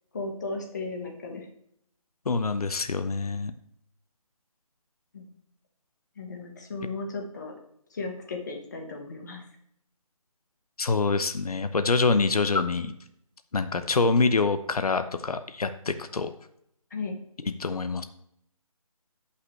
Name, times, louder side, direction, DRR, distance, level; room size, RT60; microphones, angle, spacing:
voice 1, 0.1-1.5 5.1-5.3 6.2-7.5 7.9-9.4 16.9-17.2, left 3 dB, 30° left, 2 dB, 1.3 m, -35 dB
voice 2, 2.3-3.5 10.8-12.9 13.5-16.3 17.4-18.0, left 4 dB, 85° left, 10 dB, 0.8 m, -25 dB
14.0 x 5.7 x 3.3 m, 0.73 s
figure-of-eight pair, 170°, 19 cm